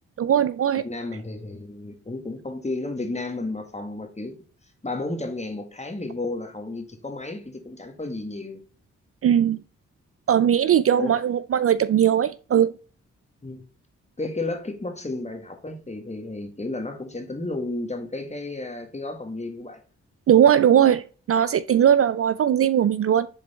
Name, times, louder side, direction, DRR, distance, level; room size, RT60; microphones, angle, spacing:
voice 1, 0.2-0.8 9.2-9.6 10.3-12.7 20.3-23.3, right 9 dB, 50° right, 0.4 m, -19 dB
voice 2, 0.7-4.3 4.8-8.6 11.0-11.2 13.4-13.6 14.2-19.8, left 2 dB, 20° left, 1.8 m, -32 dB
6.5 x 3.9 x 4.4 m
supercardioid pair, 45°, 31 cm